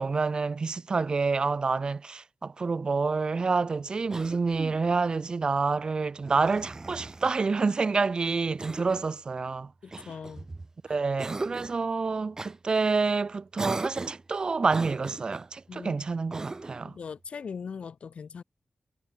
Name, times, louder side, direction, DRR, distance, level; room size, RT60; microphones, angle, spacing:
voice 1, 0.0-9.7 10.9-16.9, right 4 dB, 45° right, 0.8 m, -28 dB
Cough, 4.1-4.9 6.2-7.4 8.6-9.1 9.9-10.7 11.2-11.8 12.4-12.6 13.6-14.3 14.7-15.5 16.3-16.9, right 3 dB, 30° right, 6.0 m, -38 dB
voice 2, 9.8-10.5 10.9-11.0 15.7-16.0 16.8-18.4, left 6 dB, 75° left, 2.5 m, -40 dB
wide cardioid pair, 115°, 2 cm